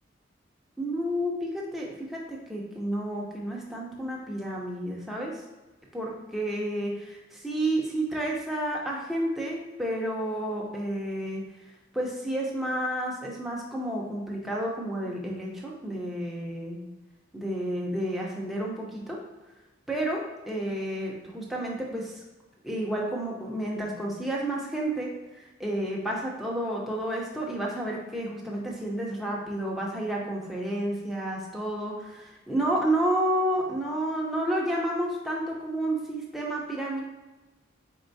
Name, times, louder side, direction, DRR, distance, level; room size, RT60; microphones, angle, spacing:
voice 1, 0.8-5.4 5.9-11.4 11.9-16.8 17.3-19.2 19.9-22.2 22.6-37.0, right 1 dB, ahead, -3 dB, 0.6 m, -30 dB
4.4 x 4.1 x 2.7 m, 1.1 s
head